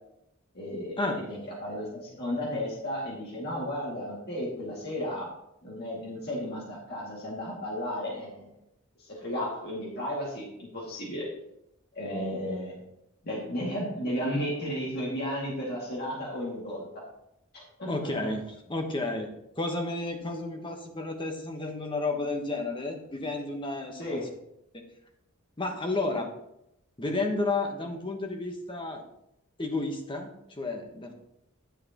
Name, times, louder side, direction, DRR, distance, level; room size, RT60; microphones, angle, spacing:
voice 1, 0.5-5.3 5.6-8.5 9.0-11.2 11.9-12.8 13.2-16.9 17.5-17.9 18.2-18.3 24.0-24.3, equal, 50° left, -5 dB, 2.2 m, -34 dB
voice 2, 17.9-19.3 19.6-24.2 25.6-26.3 27.0-29.0 29.6-31.1, left 2 dB, 25° left, 3 dB, 1.1 m, -31 dB
10.0 x 7.5 x 3.0 m, 0.81 s
head